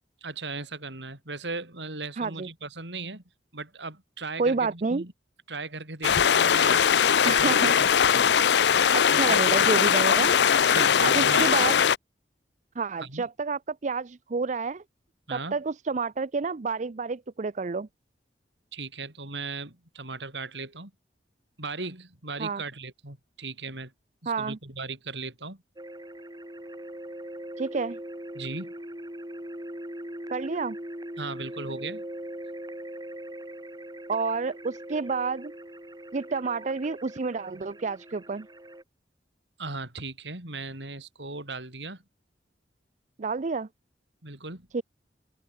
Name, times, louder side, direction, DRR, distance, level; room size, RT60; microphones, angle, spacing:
voice 1, 0.2-3.2 3.5-5.1 5.5-6.9 7.2-8.3 9.1-9.4 10.7-11.5 13.0-13.3 15.3-15.6 18.7-20.9 21.6-23.9 24.2-25.6 28.4-28.7 31.2-32.0 39.6-42.0 44.2-44.7, right 3 dB, 85° right, 5.3 m, -37 dB
voice 2, 2.2-2.5 4.4-5.0 7.2-7.7 8.9-10.4 11.0-11.8 12.8-14.8 15.3-17.9 22.4-22.6 24.3-24.6 27.6-28.0 30.3-30.8 34.1-35.5 36.1-38.5 43.2-43.7 44.7-44.8, right 4 dB, 45° right, 0.5 m, -29 dB
sound 1, 6.0-12.0, left 8 dB, 75° left, 0.5 m, -20 dB
sound 2, 25.8-38.8, right 1 dB, 25° right, 7.3 m, -40 dB
open air
head